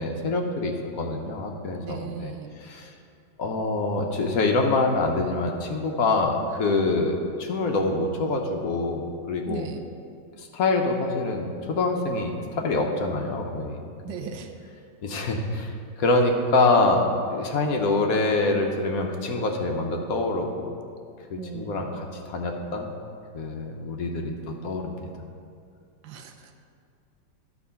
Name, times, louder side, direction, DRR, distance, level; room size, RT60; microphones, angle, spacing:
voice 1, 0.0-2.3 2.6-2.9 3.4-9.7 10.4-13.8 14.1-14.3 15.0-20.7 21.3-22.9 23.3-25.1, left 3 dB, 60° left, 2 dB, 1.0 m, -25 dB
voice 2, 1.8-2.5 9.5-9.9 14.0-14.5 21.4-22.0 26.0-26.5, right 7 dB, 85° right, 5 dB, 1.4 m, -38 dB
12.0 x 4.6 x 5.6 m, 2.3 s
omnidirectional pair, 2.0 m